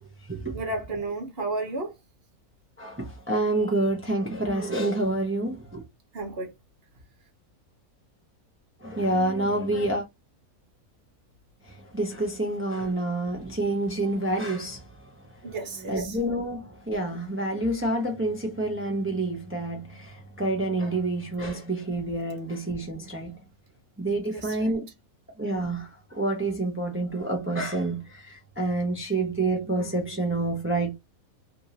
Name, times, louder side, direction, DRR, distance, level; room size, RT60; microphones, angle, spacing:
voice 1, 0.5-1.9 6.1-6.5 15.4-16.2 24.2-24.7, right 2 dB, 45° right, 1.2 m, -33 dB
voice 2, 2.8-5.8 8.8-10.0 11.7-14.9 15.9-23.3 24.0-24.8 25.4-30.9, right 2 dB, 10° right, 0.7 m, -28 dB
3.5 x 2.6 x 2.8 m
omnidirectional pair, 1.6 m